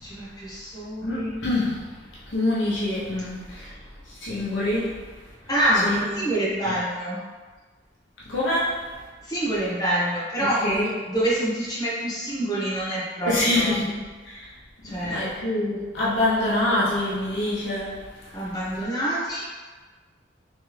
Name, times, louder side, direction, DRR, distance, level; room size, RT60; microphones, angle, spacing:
voice 1, 0.0-1.5 5.5-5.9 6.1-7.2 9.2-10.6 11.1-13.8 14.8-15.2 18.3-19.5, right 1 dB, 20° left, -9 dB, 1.2 m, -26 dB
voice 2, 1.0-1.8 2.3-3.7 4.2-5.0 5.7-6.1 6.6-6.7 8.3-8.8 10.6-10.9 13.2-14.4 14.9-17.9, left 1 dB, 85° left, -7 dB, 0.8 m, -25 dB
3.4 x 3.2 x 3.2 m, 1.4 s
head